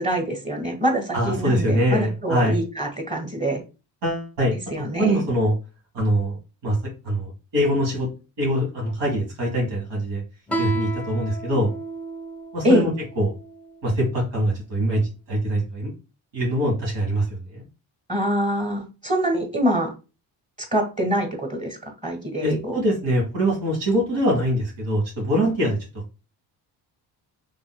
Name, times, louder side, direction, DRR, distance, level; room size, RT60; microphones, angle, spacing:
voice 1, 0.0-3.6 4.7-5.2 12.6-12.9 18.1-19.9 20.7-22.8, equal, 15° right, 3 dB, 1.3 m, -24 dB
voice 2, 1.1-2.6 4.0-4.6 5.0-5.5 5.9-6.4 6.6-6.8 7.0-8.1 8.4-10.2 10.6-11.7 12.5-12.9 13.2-13.3 13.8-15.0 15.3-15.9 16.3-17.2 17.5-17.6 22.4-25.8, equal, 85° right, -2 dB, 1.7 m, -23 dB
Guitar, 10.5-13.7, right 2 dB, 5° left, 0.6 m, -32 dB
3.6 x 2.9 x 2.2 m, 0.30 s
cardioid pair, 70°, 42 cm